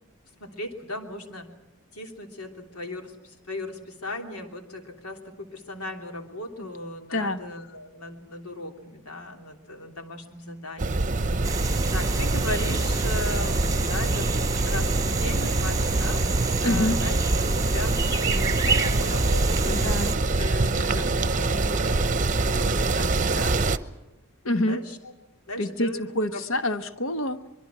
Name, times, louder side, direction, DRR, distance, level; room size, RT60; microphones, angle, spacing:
voice 1, 0.4-1.5 1.9-11.6 11.9-14.3 14.6-16.2 16.6-19.8 20.0-23.6 24.6-25.0 25.5-26.4, left 1 dB, 90° left, 4 dB, 3.3 m, -37 dB
voice 2, 7.1-7.4 16.6-17.0 19.7-20.1 24.4-24.8 25.6-27.5, left 1 dB, 60° left, 9 dB, 1.4 m, -26 dB
sound 1, 10.8-23.8, right 2 dB, 35° right, 0.8 m, -25 dB
sound 2, 11.4-20.2, right 3 dB, 15° right, 1.3 m, -29 dB
24.5 x 22.5 x 6.2 m, 1.1 s
head